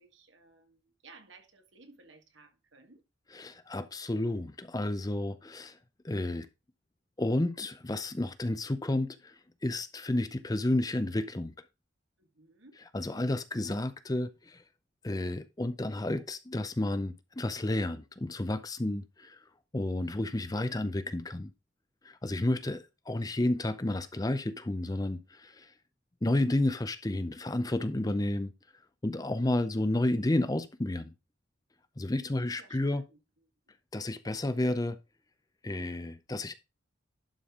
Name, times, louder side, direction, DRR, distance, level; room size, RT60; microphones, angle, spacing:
voice 1, 0.0-3.0 12.2-12.8 32.6-33.2, right 3 dB, 70° right, 1.8 m, -57 dB
voice 2, 3.3-5.8 6.0-6.5 7.2-9.3 9.6-11.5 12.9-14.6 15.0-19.4 19.7-21.5 22.0-25.7 26.2-28.5 29.0-31.1 32.0-33.0 33.9-35.0 35.6-36.5, left 1 dB, 20° left, 0.5 m, -31 dB
11.5 x 5.2 x 3.7 m
head